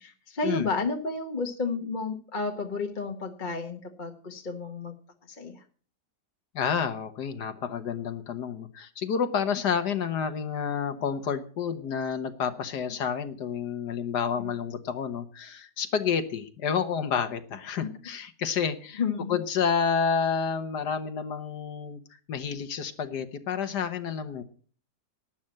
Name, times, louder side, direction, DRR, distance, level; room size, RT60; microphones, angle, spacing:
voice 1, 0.0-5.0 5.3-5.6 14.4-14.5 17.8-18.0 19.0-19.4, left 4 dB, 30° left, 4 dB, 1.1 m, -32 dB
voice 2, 6.5-19.0 19.3-22.0 22.3-24.4, left 6 dB, 75° left, 9 dB, 1.6 m, -29 dB
12.0 x 9.0 x 7.6 m, 0.43 s
omnidirectional pair, 1.8 m